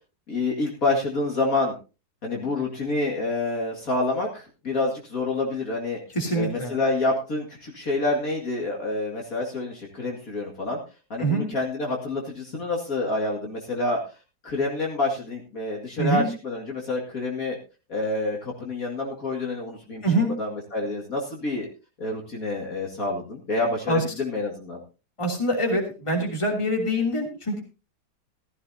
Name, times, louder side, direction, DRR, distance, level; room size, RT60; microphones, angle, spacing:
voice 1, 0.3-1.7 2.2-6.0 6.3-10.8 11.1-14.0 14.4-17.6 17.9-20.0 20.4-21.7 22.0-24.8, left 2 dB, 50° left, -1 dB, 2.5 m, -27 dB
voice 2, 6.1-6.7 11.2-11.5 16.0-16.3 20.0-20.3 23.9-24.0 25.2-27.6, right 1 dB, 15° left, 1 dB, 2.9 m, -24 dB
15.0 x 14.5 x 2.8 m, 0.31 s
omnidirectional pair, 1.9 m